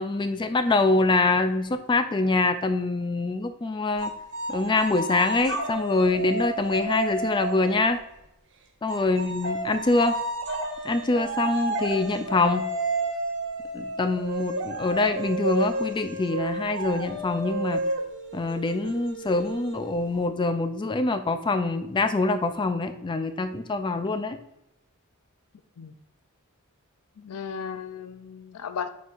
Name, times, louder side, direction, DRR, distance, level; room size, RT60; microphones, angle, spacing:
voice 1, 0.0-4.1 4.5-8.0 8.8-10.2 10.8-12.7 13.7-17.8 18.3-24.4, left 3 dB, 20° left, 9 dB, 0.3 m, -25 dB
sound 1, 4.0-7.9 8.9-20.2, right 1 dB, 55° right, 0.9 m, -31 dB
voice 2, 27.2-28.9, left 7 dB, 85° left, 10 dB, 0.5 m, -35 dB
9.4 x 4.1 x 2.5 m, 0.84 s
head